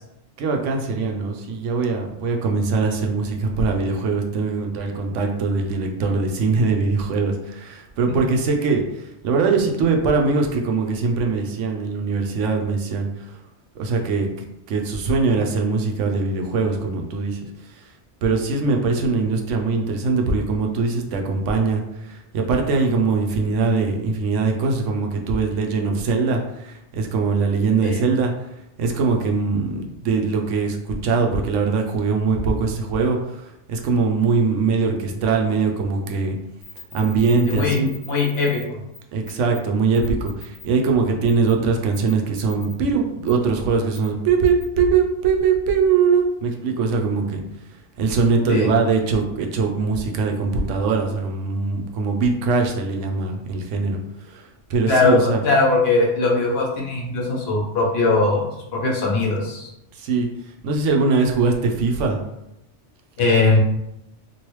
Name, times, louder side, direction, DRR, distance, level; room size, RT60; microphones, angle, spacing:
voice 1, 0.4-13.4 13.7-17.8 18.2-28.5 28.8-36.4 36.9-37.9 39.1-47.4 48.0-54.0 54.3-55.4 59.9-60.3 60.6-62.2, right 4 dB, 80° right, 2 dB, 0.9 m, -22 dB
sound 1, 36.6-38.6 38.9-39.0 39.2-39.6 39.9-40.6 41.3-41.5 41.9-42.7 43.3-43.4 43.9-44.1 44.5-44.6, left 5 dB, 30° right, 1.3 m, -41 dB
voice 2, 37.5-37.8 38.1-38.8 48.5-48.7 54.9-58.4 58.7-59.7 63.2-63.6, left 3 dB, 60° left, -2 dB, 0.9 m, -20 dB
3.1 x 2.6 x 3.0 m, 0.86 s
omnidirectional pair, 1.2 m